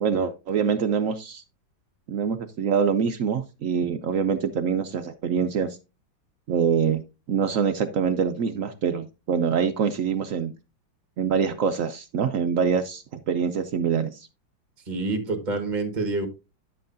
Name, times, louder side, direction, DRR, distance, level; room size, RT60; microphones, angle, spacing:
voice 1, 0.0-1.4 2.1-5.8 6.5-7.0 7.3-10.5 11.2-14.3, right 7 dB, 70° right, 9 dB, 0.7 m, -25 dB
voice 2, 14.9-16.3, right 3 dB, 25° right, 6 dB, 1.5 m, -27 dB
10.5 x 7.8 x 2.6 m, 0.28 s
omnidirectional pair, 2.1 m